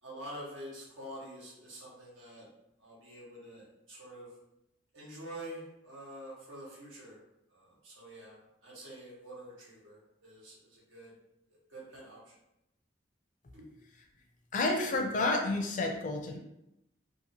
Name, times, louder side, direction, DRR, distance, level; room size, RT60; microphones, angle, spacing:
voice 1, 0.0-2.5 2.8-4.3 4.9-7.2 7.5-11.2 11.7-12.3 13.5-13.7, right 1 dB, 90° right, -6 dB, 1.2 m, -47 dB
voice 2, 14.5-16.4, left 2 dB, 40° left, 2 dB, 0.4 m, -30 dB
2.8 x 2.5 x 2.7 m, 0.85 s
head